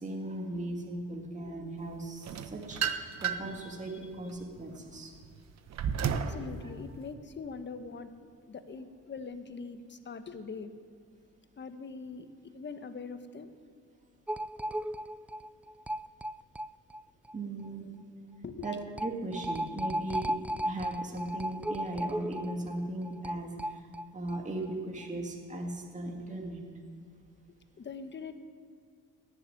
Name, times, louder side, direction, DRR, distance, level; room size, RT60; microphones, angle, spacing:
voice 1, 0.0-2.8 3.2-5.1 6.0-6.5 17.3-17.9 18.6-20.4 20.6-23.8 24.1-26.6, right 2 dB, 25° right, 1 dB, 2.2 m, -38 dB
sound 1, 2.2-3.6 4.1-6.4, right 7 dB, 60° right, 1.1 m, -33 dB
voice 2, 6.1-10.7 11.6-12.3 12.5-13.5 18.4-18.7 19.5-19.6 27.8-28.4, left 5 dB, 35° left, 9 dB, 1.2 m, -43 dB
sound 2, 14.3-17.0 17.3-17.4 17.6-17.7 18.6-24.4 24.7-24.8 25.0-25.1, right 1 dB, 5° right, 0.3 m, -35 dB
16.5 x 7.5 x 9.3 m, 2.1 s
cardioid pair, 90°, 30 cm